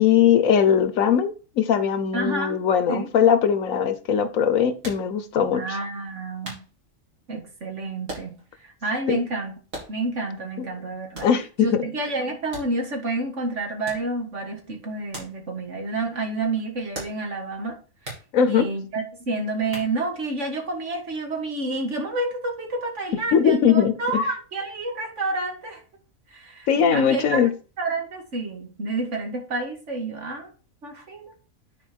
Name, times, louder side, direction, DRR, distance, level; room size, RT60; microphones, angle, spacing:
voice 1, 0.0-5.8 9.1-9.2 10.6-10.7 11.2-11.9 18.3-18.7 23.3-24.2 26.7-27.5, left 8 dB, 90° left, 1.3 m, -20 dB
voice 2, 2.1-2.6 2.9-3.1 5.5-6.6 7.3-8.4 8.6-9.5 9.9-11.3 11.6-17.8 18.4-25.8 26.3-27.5 27.8-30.5 30.8-31.3, right 2 dB, 60° right, 2.2 m, -29 dB
sound 1, 4.8-5.2 5.7-5.8 6.4-6.7 8.1-8.5 8.8-8.9 9.7-10.2 11.1-11.4 12.5-13.0 13.9-14.1 15.1-15.4 15.7-15.8 16.9-17.3 18.1-18.3 19.7-20.2, right 2 dB, 85° right, 3.6 m, -38 dB
9.5 x 4.5 x 4.5 m
omnidirectional pair, 1.4 m